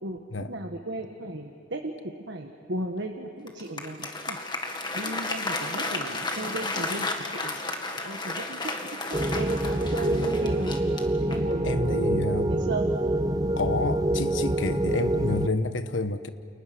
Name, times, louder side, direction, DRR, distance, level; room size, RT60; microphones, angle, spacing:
voice 1, 0.5-4.4 4.9-7.6 8.0-8.6 9.2-10.8 11.2-12.9, right 2 dB, 60° right, 3 dB, 1.6 m, -35 dB
Applause, 3.5-11.6, left 2 dB, 25° left, 1.8 m, -33 dB
sound 1, 9.1-15.5, right 1 dB, 20° right, 0.6 m, -26 dB
voice 2, 11.6-12.6 13.6-16.3, left 3 dB, 75° left, 10 dB, 1.2 m, -29 dB
29.5 x 29.0 x 6.2 m, 2.6 s
head